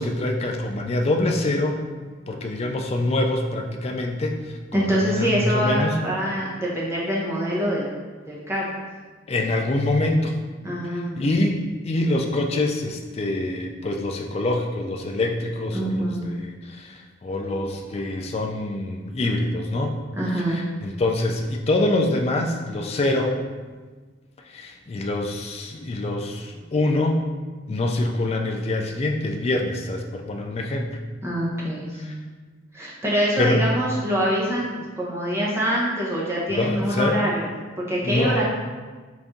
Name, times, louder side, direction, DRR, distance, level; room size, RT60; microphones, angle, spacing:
voice 1, 0.0-1.8 2.3-6.0 9.3-10.4 10.8-20.0 20.3-23.4 24.4-27.2 27.7-30.9 32.0-32.2 33.4-33.7 36.5-37.2 38.0-38.4, left 2 dB, 30° left, 3 dB, 0.3 m, -25 dB
voice 2, 4.7-7.8 8.3-8.7 10.6-11.3 15.7-16.3 20.2-20.6 31.2-32.0 32.7-37.5 37.8-38.4, equal, 15° right, -5 dB, 0.7 m, -24 dB
4.0 x 2.6 x 3.5 m, 1.4 s
head